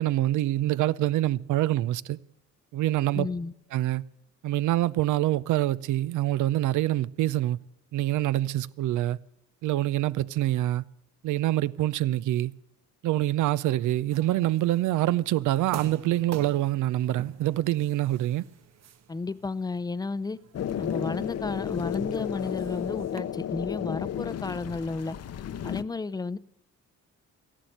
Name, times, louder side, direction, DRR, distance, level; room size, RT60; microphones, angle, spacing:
voice 1, 0.0-2.2 2.7-3.3 3.7-4.0 4.4-7.6 7.9-9.2 9.6-10.8 11.2-12.5 13.0-18.5, right 14 dB, 80° right, 0.6 m, -25 dB
voice 2, 3.1-3.5 19.1-20.4 20.8-25.2 25.6-26.4, left 3 dB, 15° left, 0.5 m, -32 dB
sound 1, 14.1-23.2, right 8 dB, 60° right, 0.9 m, -46 dB
sound 2, 20.5-25.8, left 10 dB, 55° left, 0.8 m, -33 dB
14.0 x 11.5 x 7.8 m
cardioid pair, 90°, 30 cm